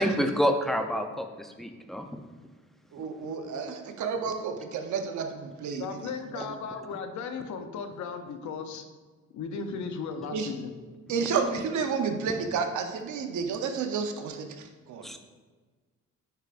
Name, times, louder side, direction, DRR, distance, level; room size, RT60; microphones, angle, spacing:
voice 1, 0.0-2.0 15.0-15.2, equal, ahead, 5 dB, 0.6 m, -28 dB
voice 2, 2.9-6.5 10.3-10.5 11.1-15.2, right 5 dB, 75° right, 6 dB, 0.8 m, -31 dB
voice 3, 5.8-8.8 9.3-10.7, left 5 dB, 70° left, 7 dB, 0.7 m, -36 dB
9.2 x 4.7 x 2.5 m, 1.4 s
cardioid pair, 90°, 30 cm